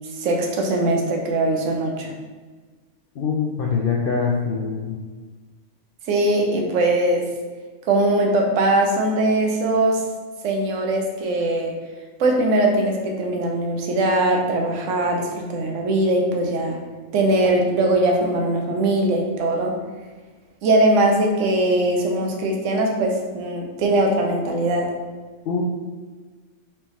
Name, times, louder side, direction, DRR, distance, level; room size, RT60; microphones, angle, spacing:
voice 1, 0.2-2.1 6.1-7.3 7.9-10.0 10.4-11.7 12.2-16.8 17.1-19.7 20.6-24.9, right 1 dB, 70° right, 1 dB, 1.0 m, -21 dB
voice 2, 3.2-5.0 25.5-25.6, left 5 dB, 70° left, -2 dB, 0.5 m, -23 dB
4.5 x 3.4 x 3.0 m, 1.4 s
omnidirectional pair, 1.4 m